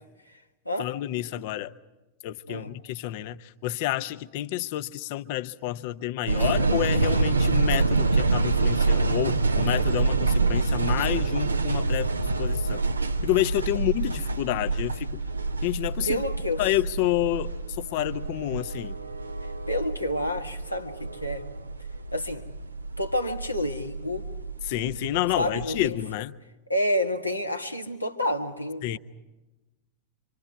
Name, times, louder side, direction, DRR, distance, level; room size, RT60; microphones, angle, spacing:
voice 1, 0.8-1.7 2.2-12.8 13.2-15.2 15.6-16.2 16.6-18.9 24.7-26.3 28.8-29.0, left 15 dB, 50° left, 0.8 m, -29 dB
sound 1, 6.3-25.9, right 3 dB, 80° right, 0.8 m, -27 dB
voice 2, 16.0-16.6 19.7-21.5 22.1-22.5 23.0-24.3 25.3-26.0 26.7-29.0, left 1 dB, 85° left, 1.6 m, -29 dB
26.5 x 26.0 x 4.7 m
figure-of-eight pair, 90°, 0 cm